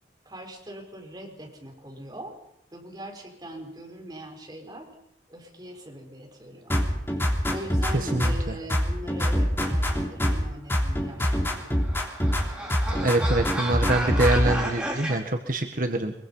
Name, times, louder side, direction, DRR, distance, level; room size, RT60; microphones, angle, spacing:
voice 1, 0.2-2.3 2.7-4.9 5.3-6.8 7.5-11.7, right 1 dB, 25° right, 2 dB, 4.5 m, -41 dB
sound 1, 6.7-8.4 8.7-10.4 10.7-12.4 12.7-14.6, equal, 15° left, 3.2 m, -24 dB
voice 2, 7.9-8.6 12.9-16.1, right 2 dB, 50° right, 5 dB, 1.5 m, -25 dB
sound 2, 11.4-15.2, right 1 dB, 5° right, 4.5 m, -33 dB
23.0 x 23.0 x 5.6 m, 0.78 s
head